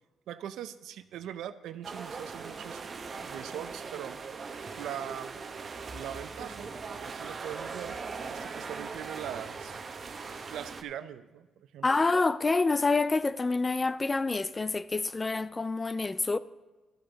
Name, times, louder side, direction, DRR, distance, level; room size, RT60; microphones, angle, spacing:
voice 1, 0.3-2.8 3.2-4.2 4.8-5.4 5.9-6.7 7.0-8.0 8.3-9.8 10.5-12.0, right 10 dB, 80° right, 0.5 m, -41 dB
sound 1, 1.8-10.8, right 4 dB, 40° right, 0.9 m, -40 dB
voice 2, 11.8-16.4, left 3 dB, 25° left, 0.4 m, -27 dB
13.0 x 8.0 x 3.9 m
cardioid pair, 90°, 0 cm